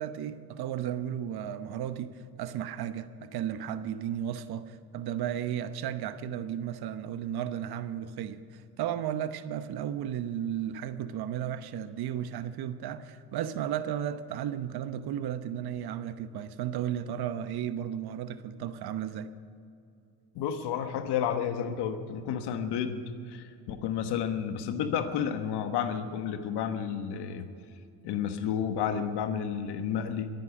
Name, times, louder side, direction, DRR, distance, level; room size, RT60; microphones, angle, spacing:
voice 1, 0.0-19.3, right 10 dB, 65° right, 12 dB, 1.0 m, -34 dB
voice 2, 20.3-27.5 28.0-30.3, left 8 dB, 75° left, 8 dB, 1.3 m, -31 dB
22.0 x 9.4 x 6.0 m, 2.6 s
supercardioid pair, 65°, 40 cm